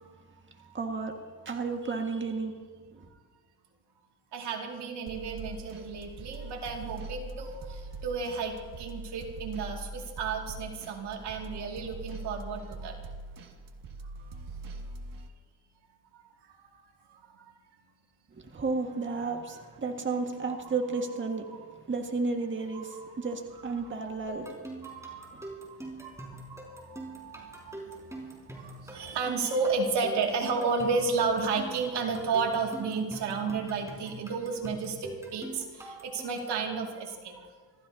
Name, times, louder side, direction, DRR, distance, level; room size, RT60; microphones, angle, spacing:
voice 1, 0.7-1.1 1.5-2.6 2.9-3.1 18.3-21.5 21.9-24.5 25.3-25.5, right 4 dB, 30° right, 2 dB, 1.8 m, -32 dB
voice 2, 4.3-12.9 20.6-21.0 21.3-21.6 22.7-23.3 23.8-23.9 24.8-37.5, right 4 dB, 85° right, 1 dB, 2.4 m, -33 dB
sound 1, 5.1-15.3, right 2 dB, 55° right, 1.8 m, -42 dB
sound 2, 24.3-36.6, right 2 dB, 5° right, 5.5 m, -44 dB
26.5 x 15.0 x 2.8 m, 1.5 s
cardioid pair, 100°, 39 cm